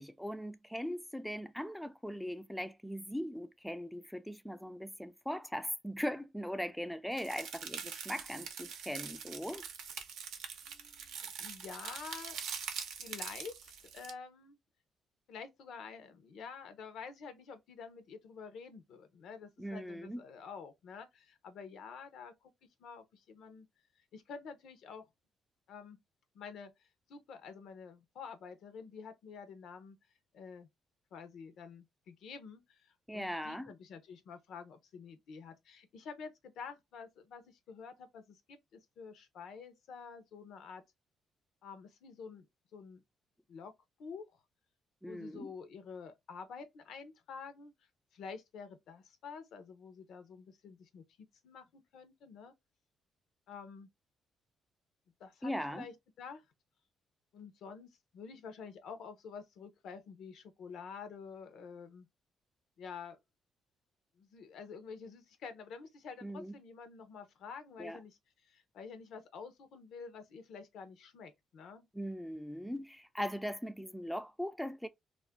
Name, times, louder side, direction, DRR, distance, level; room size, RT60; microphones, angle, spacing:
voice 1, 0.0-9.6 19.6-20.2 33.1-33.7 45.0-45.5 55.4-55.9 66.2-66.5 67.8-68.0 71.9-74.9, equal, 5° left, 0.3 m, -40 dB
sound 1, 7.2-14.1, right 7 dB, 85° right, 0.6 m, -44 dB
voice 2, 10.6-12.4 13.0-14.6 15.3-23.7 24.1-25.0 25.7-26.0 26.3-30.0 30.3-30.7 31.1-40.8 41.6-42.5 42.7-43.0 43.5-43.7 44.0-44.3 45.1-47.7 48.1-52.5 53.5-53.9 55.2-56.4 57.3-62.1 62.8-63.2 64.2-71.9, left 5 dB, 75° left, 0.6 m, -49 dB
2.4 x 2.1 x 3.4 m
cardioid pair, 90°, 0 cm